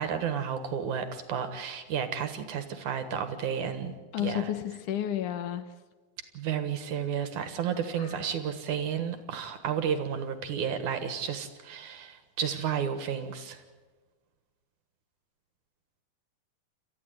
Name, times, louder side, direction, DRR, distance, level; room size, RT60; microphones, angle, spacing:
voice 1, 0.0-4.5 6.3-13.6, right 8 dB, 60° right, 9 dB, 2.5 m, -32 dB
voice 2, 4.1-5.6 8.0-8.1, left 11 dB, 65° left, 11 dB, 2.2 m, -31 dB
29.0 x 14.5 x 9.3 m, 1.3 s
omnidirectional pair, 4.5 m